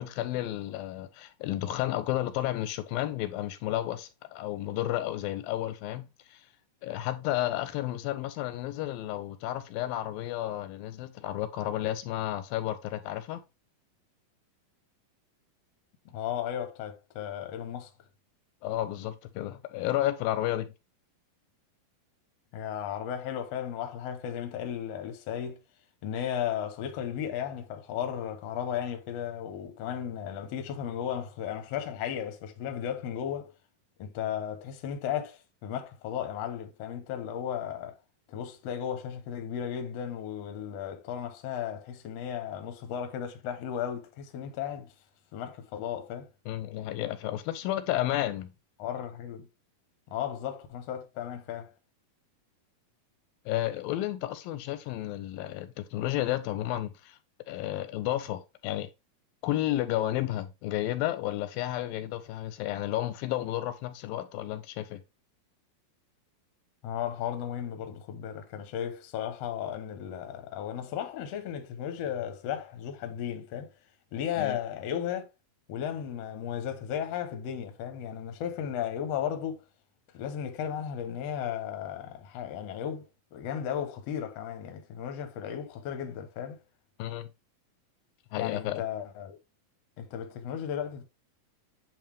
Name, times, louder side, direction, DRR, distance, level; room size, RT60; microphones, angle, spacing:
voice 1, 0.0-6.4 6.8-13.4 18.6-20.7 46.5-48.5 53.5-57.2 57.5-58.9 59.4-65.0 74.4-74.6 87.0-87.3 88.3-88.8, left 14 dB, 90° left, 2.4 m, -32 dB
voice 2, 16.0-17.9 22.5-25.6 26.0-33.5 34.0-37.9 38.3-44.9 45.3-46.3 48.8-49.5 50.1-51.7 66.8-73.7 74.1-75.2 75.7-79.6 80.1-83.0 83.3-86.6 88.4-89.4 90.0-91.0, left 9 dB, 70° left, 1.6 m, -35 dB
8.7 x 3.2 x 3.4 m
omnidirectional pair, 4.1 m